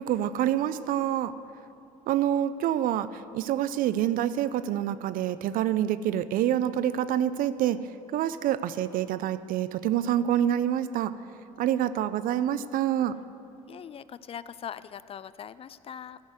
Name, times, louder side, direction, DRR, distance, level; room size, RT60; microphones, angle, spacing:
voice 1, 0.0-1.3 2.1-7.8 8.1-11.1 11.6-13.2, right 11 dB, 55° right, 15 dB, 0.5 m, -27 dB
voice 2, 13.7-16.2, left 8 dB, 35° left, 17 dB, 0.3 m, -41 dB
13.0 x 6.3 x 7.8 m, 2.8 s
hypercardioid pair, 70°, 17 cm